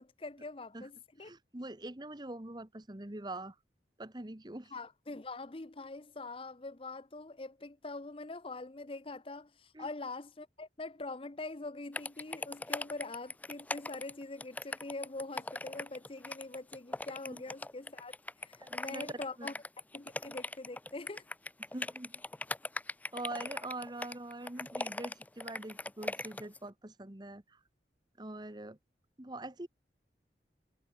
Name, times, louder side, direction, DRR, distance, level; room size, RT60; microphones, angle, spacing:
voice 1, 0.0-1.3 4.7-19.5 19.9-21.2, left 2 dB, 30° left, 0.8 m, -44 dB
voice 2, 1.2-3.5 4.0-4.7 9.7-9.9 17.3-17.4 18.6-19.1 19.4-19.5 21.7-22.2 23.1-27.6 28.2-28.8 29.2-29.7, right 2 dB, 25° right, 1.3 m, -44 dB
sound 1, 11.9-26.6, left 2 dB, 10° left, 0.4 m, -40 dB
head